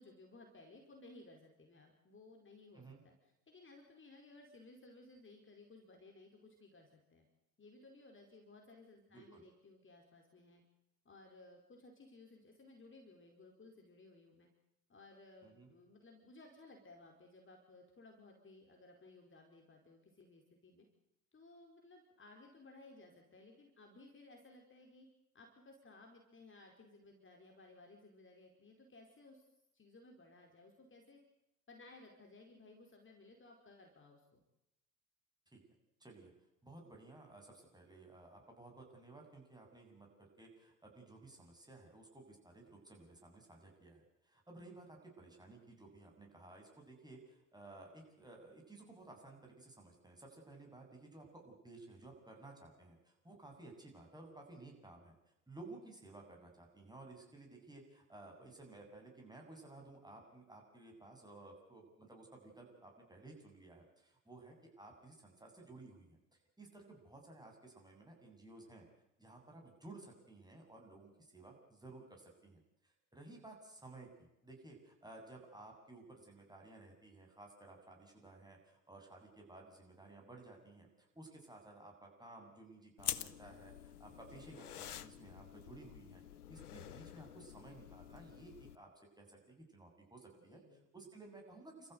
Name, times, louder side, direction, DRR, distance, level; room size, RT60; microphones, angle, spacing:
voice 1, 0.0-7.3 7.6-10.6 11.0-14.5 14.9-20.9 21.3-25.1 25.3-29.4 29.7-31.2 31.7-34.5 90.3-91.1, left 2 dB, 25° left, 2 dB, 4.8 m, -59 dB
voice 2, 9.1-9.4 15.4-15.7 35.5-35.6 36.0-36.3 36.6-55.1 55.5-66.2 66.6-68.8 69.2-74.1 74.4-86.2 86.5-88.9 89.2-91.9, right 2 dB, 10° right, 1 dB, 7.9 m, -56 dB
sound 1, 83.0-88.8, left 11 dB, 85° left, 0.8 m, -47 dB
29.0 x 14.5 x 8.1 m, 0.84 s
figure-of-eight pair, 60°, 44 cm